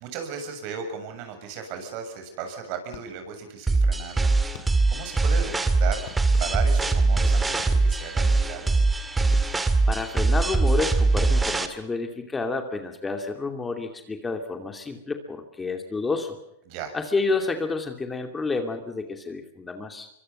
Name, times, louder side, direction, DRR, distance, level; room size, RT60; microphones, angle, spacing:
voice 1, 0.0-4.3 4.9-5.5 5.8-6.0 6.4-8.9 16.7-16.9, right 7 dB, 50° right, 6 dB, 7.3 m, -35 dB
sound 1, 2.9-3.5 4.5-5.1 6.1-6.9 7.6-8.3 9.2-9.9 10.4-11.1, left 11 dB, 50° left, 3.8 m, -46 dB
sound 2, 3.7-11.7, right 3 dB, 10° right, 2.0 m, -22 dB
voice 2, 9.9-16.4 16.9-20.1, left 3 dB, 15° left, 5 dB, 2.7 m, -29 dB
24.5 x 24.0 x 5.5 m, 0.78 s
hypercardioid pair, 125°, 0 cm